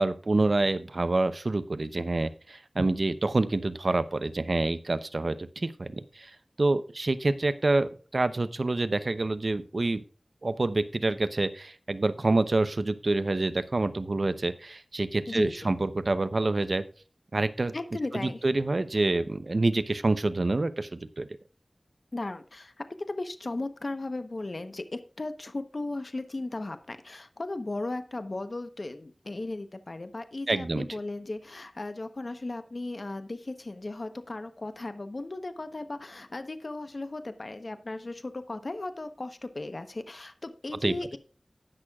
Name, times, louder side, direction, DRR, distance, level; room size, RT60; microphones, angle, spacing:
voice 1, 0.0-6.3 6.6-10.0 10.4-16.8 17.3-17.7 18.1-21.3 30.5-31.0 40.8-41.0, right 2 dB, 60° right, 13 dB, 0.7 m, -27 dB
voice 2, 15.3-15.7 17.7-18.4 22.1-22.7 23.0-41.2, left 2 dB, 55° left, 9 dB, 1.0 m, -36 dB
18.5 x 6.3 x 2.4 m, 0.38 s
wide cardioid pair, 50°, 0 cm